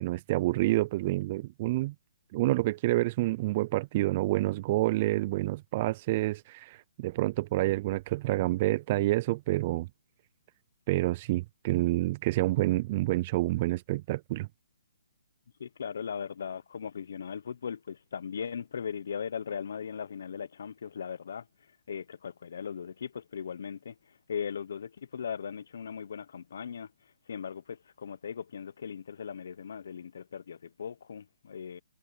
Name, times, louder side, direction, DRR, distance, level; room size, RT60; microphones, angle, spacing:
voice 1, 0.0-1.9 2.3-9.9 10.9-14.5, right 18 dB, 30° right, 0.3 m, -28 dB
voice 2, 15.6-21.5 21.9-26.9 27.3-31.8, left 7 dB, 60° left, 1.0 m, -38 dB
hypercardioid pair, 160°, 0 cm